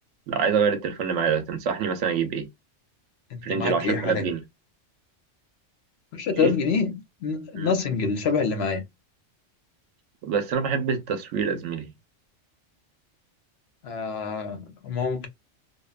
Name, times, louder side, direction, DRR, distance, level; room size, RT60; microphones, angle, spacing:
voice 1, 0.3-2.5 3.4-4.4 6.3-6.5 7.5-7.7 10.2-11.9, right 6 dB, 80° right, 0.9 m, -26 dB
voice 2, 3.3-4.2 6.1-8.8 13.8-15.3, left 5 dB, 65° left, 0.8 m, -26 dB
2.8 x 2.1 x 2.3 m
omnidirectional pair, 1.3 m